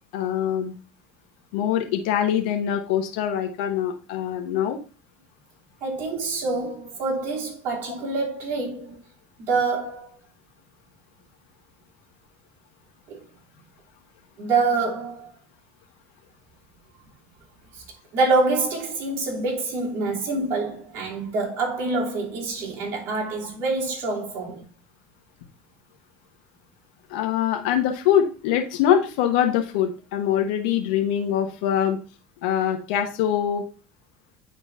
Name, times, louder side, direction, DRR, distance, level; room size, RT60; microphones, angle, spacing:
voice 1, 0.1-0.8 1.5-4.8 27.1-32.0 32.4-33.6, left 10 dB, 75° left, 1.1 m, -23 dB
voice 2, 5.8-9.0 9.5-10.2 13.1-13.2 14.4-15.3 18.1-24.6, right 3 dB, 55° right, 3.2 m, -26 dB
9.5 x 4.0 x 3.5 m
hypercardioid pair, 85°, 5 cm